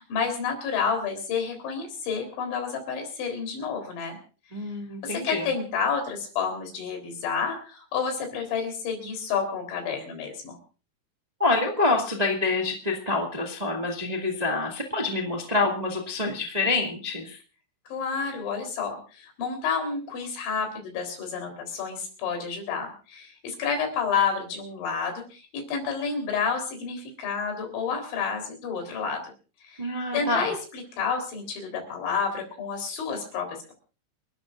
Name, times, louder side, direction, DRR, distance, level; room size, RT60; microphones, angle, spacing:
voice 1, 0.0-4.2 5.0-10.6 17.9-29.2 29.6-33.7, left 6 dB, 75° left, 4 dB, 6.3 m, -30 dB
voice 2, 4.5-5.5 11.4-17.4 29.8-30.5, left 3 dB, 30° right, 0 dB, 0.6 m, -26 dB
29.0 x 13.0 x 2.6 m, 0.37 s
omnidirectional pair, 5.3 m